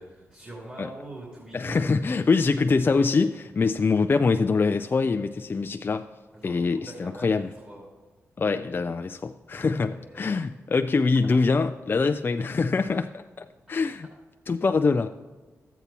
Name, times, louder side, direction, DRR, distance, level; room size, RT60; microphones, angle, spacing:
voice 1, 0.0-2.0 6.3-7.8 9.5-10.3, right 1 dB, 30° right, -4 dB, 2.8 m, -43 dB
voice 2, 1.5-6.1 6.4-7.5 8.4-14.1 14.5-15.1, left 4 dB, 40° left, 7 dB, 0.3 m, -24 dB
13.0 x 8.1 x 2.9 m, 1.3 s
cardioid pair, 70°, 6 cm